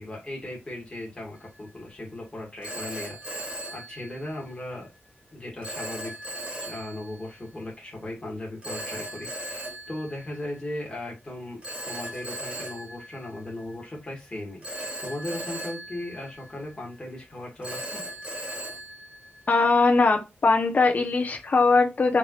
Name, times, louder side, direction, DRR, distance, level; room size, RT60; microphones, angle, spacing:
voice 1, 0.0-3.4 3.7-4.9 5.3-6.1 6.6-11.6 11.9-18.0, left 1 dB, 20° left, 1.8 m, -37 dB
Telephone, 1.4-1.7 2.6-4.6 5.6-7.4 8.6-10.8 11.6-14.0 14.6-16.9 17.6-19.8, right 1 dB, 30° right, 2.3 m, -38 dB
voice 2, 19.5-22.2, left 3 dB, 40° left, 1.0 m, -21 dB
4.5 x 3.8 x 2.5 m
wide cardioid pair, 180°, 4 cm